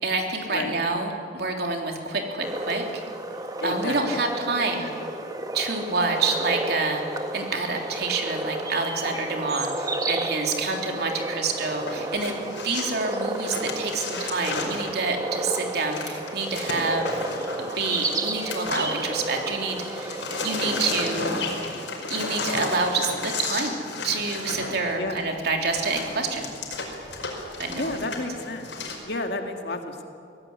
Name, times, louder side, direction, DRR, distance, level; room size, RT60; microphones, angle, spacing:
voice 1, 0.0-2.8 3.6-4.9 5.5-7.0 7.3-17.1 17.6-21.3 22.1-23.8 24.0-26.5 27.6-28.1, right 3 dB, 60° right, 2 dB, 3.5 m, -27 dB
sound 1, 2.4-21.1, right 2 dB, 20° right, 1.7 m, -32 dB
voice 2, 3.6-4.2 10.7-11.0 25.0-25.2 27.7-28.7 29.0-30.0, left 2 dB, 65° left, 4 dB, 2.2 m, -31 dB
sound 2, 11.7-19.4 19.7-29.0, left 3 dB, 85° left, 5.2 m, -33 dB
24.0 x 17.0 x 9.8 m, 2.5 s
head